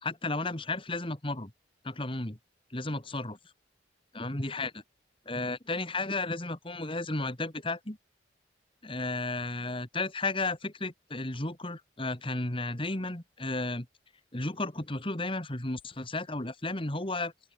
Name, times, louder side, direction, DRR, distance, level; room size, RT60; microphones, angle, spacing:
voice 1, 0.0-1.5 1.8-2.4 2.7-3.4 4.1-4.8 5.3-8.0 8.8-13.9 14.3-17.3, left 2 dB, 30° left, 2.3 m, -33 dB
open air
head